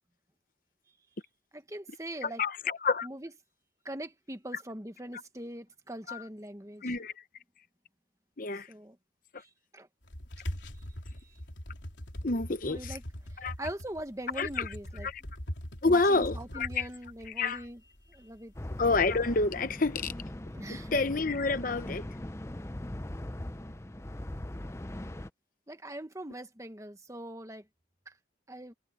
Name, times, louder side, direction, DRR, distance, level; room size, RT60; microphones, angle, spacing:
voice 1, 1.5-2.4 3.0-3.3 3.8-6.9 8.7-9.0 9.4-9.9 10.7-10.9 11.2-11.4 12.7-13.0 13.3-15.1 15.8-18.5 20.5-21.0 25.7-27.7 28.1-28.2 28.5-28.7, right 1 dB, 15° right, 1.4 m, -42 dB
voice 2, 2.2-3.1 6.1-6.2 6.8-7.1 8.4-8.7 9.3-9.4 12.2-13.0 13.4-13.5 14.4-14.7 15.0-15.2 15.8-16.9 17.4-17.6 18.8-20.1 20.7-22.1, left 3 dB, 45° left, 0.9 m, -28 dB
sound 1, 10.0-20.0, equal, 70° left, 3.6 m, -42 dB
sound 2, 18.5-25.3, left 1 dB, 15° left, 0.6 m, -40 dB
head